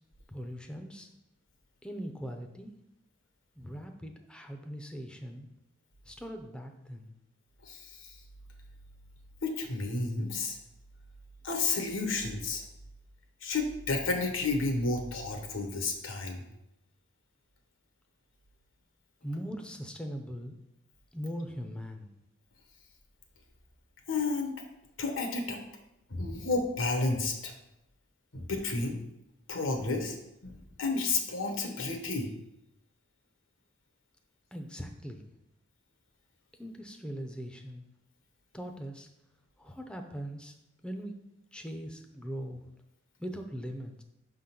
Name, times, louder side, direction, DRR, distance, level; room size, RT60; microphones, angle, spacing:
voice 1, 0.3-1.1 1.8-2.7 3.5-5.5 6.0-7.1 19.2-20.6 21.1-22.1 34.5-35.2 36.6-37.9 38.5-39.1 39.6-40.5 40.8-41.1 41.5-42.7 43.2-44.0, equal, 5° left, 4 dB, 0.5 m, -40 dB
voice 2, 7.7-8.1 9.4-10.6 11.4-12.6 13.4-16.4 24.1-24.5 25.0-25.6 26.1-27.5 28.3-29.0 29.5-30.2 30.4-32.3, left 3 dB, 85° left, 4 dB, 1.2 m, -31 dB
5.8 x 3.8 x 5.8 m, 0.84 s
head